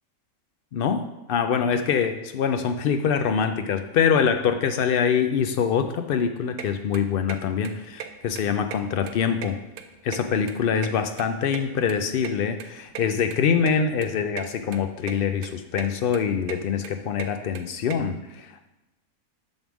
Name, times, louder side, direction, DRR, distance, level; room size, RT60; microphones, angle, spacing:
voice 1, 0.7-1.0 1.3-9.6 10.0-18.7, left 7 dB, 85° left, 7 dB, 0.4 m, -24 dB
sound 1, 6.6-6.7 6.9-7.4 7.6-7.7 8.0-8.1 8.3-9.1 9.4-10.6 10.8-12.3 12.6-12.7 12.9-13.0 13.3-13.4 13.7-13.8 14.0-14.5 14.7-15.1 15.4-15.9 16.1-17.9, right 9 dB, 85° right, 1.1 m, -36 dB
9.1 x 3.5 x 6.1 m, 0.97 s
omnidirectional pair, 1.5 m